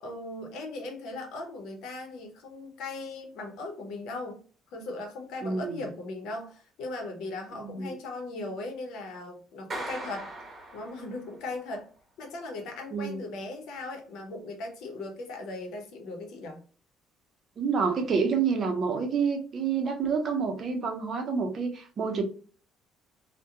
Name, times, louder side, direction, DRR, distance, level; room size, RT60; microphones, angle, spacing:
voice 1, 0.0-4.4 4.7-10.3 10.7-11.9 12.2-16.6, left 2 dB, 75° left, 0.7 m, -38 dB
voice 2, 5.4-5.8 7.6-7.9 12.9-13.2 17.6-22.2, right 5 dB, 50° right, 0.6 m, -28 dB
Clapping, 9.7-11.4, right 1 dB, 30° right, 0.9 m, -39 dB
2.8 x 2.1 x 2.3 m
cardioid pair, 90°, 0 cm